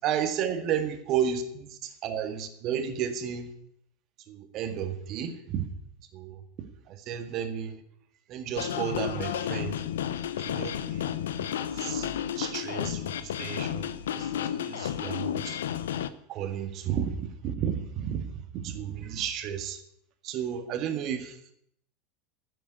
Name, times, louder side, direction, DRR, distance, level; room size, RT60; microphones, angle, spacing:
voice 1, 0.0-1.6 2.0-3.5 4.3-5.7 6.1-6.4 7.1-7.8 8.3-9.8 10.5-11.1 11.4-11.5 11.8-12.1 12.4-13.0 13.4-13.9 14.7-15.6 16.3-18.2 18.6-19.8 20.2-21.3, right 8 dB, 45° right, 8 dB, 1.8 m, -32 dB
sound 1, 8.6-16.1, left 10 dB, 65° left, 0.7 m, -32 dB
10.5 x 7.8 x 9.6 m, 0.71 s
figure-of-eight pair, 80°, 0 cm